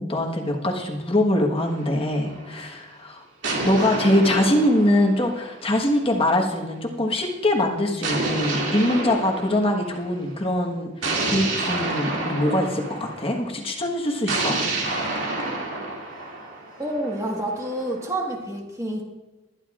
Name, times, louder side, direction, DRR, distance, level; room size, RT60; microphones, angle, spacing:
voice 1, 0.0-3.2 3.6-14.6, left 1 dB, 30° left, 0 dB, 1.4 m, -23 dB
sound 1, 1.6-2.6 3.4-6.0 8.0-10.2 11.0-13.3 14.3-18.1, right 2 dB, 85° right, 2.5 m, -29 dB
voice 2, 16.8-19.0, right 1 dB, 15° right, 0 dB, 1.5 m, -28 dB
21.5 x 10.5 x 2.5 m, 1.1 s
head